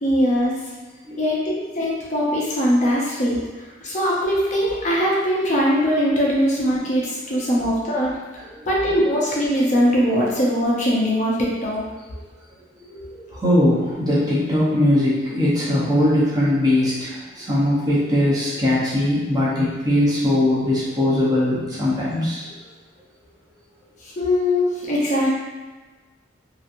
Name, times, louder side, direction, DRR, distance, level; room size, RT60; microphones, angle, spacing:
voice 1, 0.0-0.6 1.1-3.4 3.8-11.8 24.0-25.3, equal, 40° left, -5 dB, 0.5 m, -21 dB
voice 2, 13.4-22.5, left 1 dB, 20° right, -8 dB, 0.7 m, -20 dB
2.9 x 2.4 x 2.5 m, 1.3 s
head